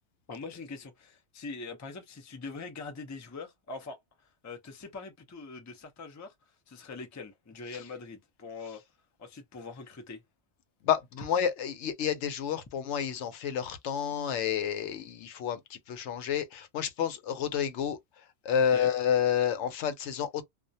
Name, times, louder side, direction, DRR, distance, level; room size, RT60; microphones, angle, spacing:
voice 1, 0.3-4.0 4.4-6.3 6.7-8.8 9.2-10.2 18.7-18.9, left 4 dB, 25° left, 0.4 m, -43 dB
voice 2, 10.8-18.0 18.4-20.4, left 8 dB, 85° left, 0.9 m, -29 dB
2.3 x 2.1 x 2.6 m
omnidirectional pair, 1.2 m